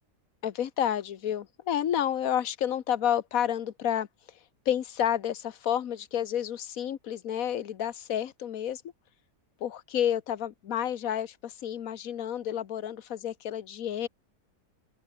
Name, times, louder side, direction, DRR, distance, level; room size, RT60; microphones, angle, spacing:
voice 1, 0.4-4.1 4.6-8.8 9.6-14.1, left 10 dB, 60° left, 1.5 m, -30 dB
open air
omnidirectional pair, 1.7 m